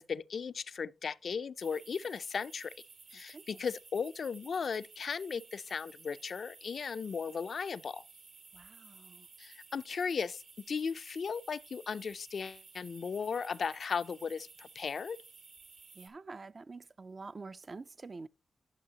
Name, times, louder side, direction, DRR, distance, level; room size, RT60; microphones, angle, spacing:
voice 1, 0.0-2.7 3.1-8.0 9.4-15.2, left 6 dB, 65° left, 0.3 m, -36 dB
sound 1, 1.6-16.1, right 4 dB, 80° right, 2.3 m, -56 dB
voice 2, 3.1-3.6 8.5-9.3 15.9-18.3, right 3 dB, 45° right, 0.4 m, -47 dB
11.0 x 7.3 x 2.8 m
cardioid pair, 70°, 0 cm